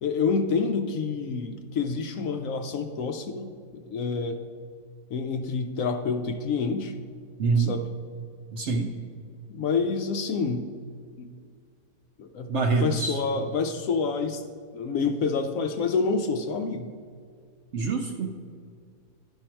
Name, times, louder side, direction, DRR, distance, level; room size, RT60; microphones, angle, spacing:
voice 1, 0.0-4.4 5.1-6.9 7.6-7.9 9.5-10.7 11.2-11.3 12.2-14.4 14.7-16.9, left 4 dB, 70° left, 7 dB, 0.9 m, -28 dB
voice 2, 7.4-7.7 8.5-8.9 12.5-13.2 17.7-18.3, right 4 dB, 60° right, 4 dB, 0.8 m, -25 dB
11.0 x 5.6 x 4.4 m, 2.1 s
omnidirectional pair, 1.7 m